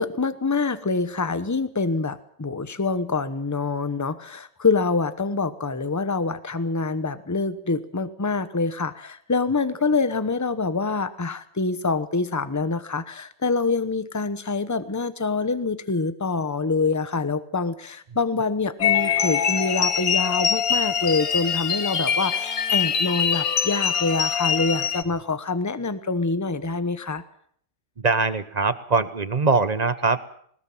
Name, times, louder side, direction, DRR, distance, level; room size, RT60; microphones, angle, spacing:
voice 1, 0.0-27.2, left 4 dB, 15° left, 13 dB, 0.8 m, -25 dB
sound 1, 18.8-25.0, left 7 dB, 60° left, 1.6 m, -23 dB
voice 2, 28.0-30.2, right 4 dB, 35° right, 14 dB, 0.8 m, -22 dB
21.0 x 20.0 x 7.4 m, 0.64 s
omnidirectional pair, 1.8 m